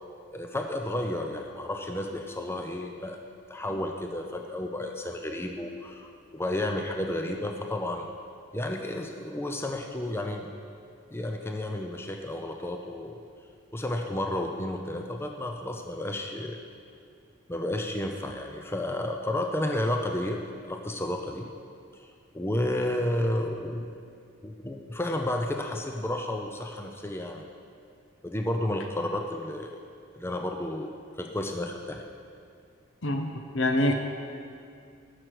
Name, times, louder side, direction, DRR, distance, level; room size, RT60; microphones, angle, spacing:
voice 1, 0.3-3.2 3.5-8.1 8.5-10.5 11.1-13.1 13.7-16.6 17.5-20.4 20.6-21.5 21.9-23.9 24.4-27.5 28.2-29.8 30.1-30.9 31.2-32.0, left 1 dB, 10° left, 3 dB, 0.5 m, -32 dB
voice 2, 33.0-33.9, left 1 dB, 65° left, 5 dB, 0.7 m, -25 dB
12.0 x 6.6 x 4.7 m, 2.3 s
head